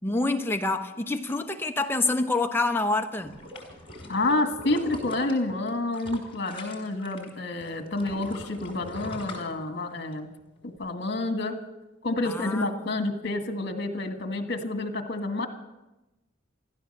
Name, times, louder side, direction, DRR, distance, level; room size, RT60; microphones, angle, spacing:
voice 1, 0.0-3.4 12.2-12.7, left 2 dB, 10° left, 0.9 m, -27 dB
sound 1, 3.2-7.3 7.6-10.1 10.6-10.7, left 1 dB, 30° left, 4.8 m, -41 dB
voice 2, 4.1-10.3 10.6-11.6 12.0-15.5, left 2 dB, 55° left, 1.8 m, -29 dB
15.5 x 13.5 x 6.6 m
head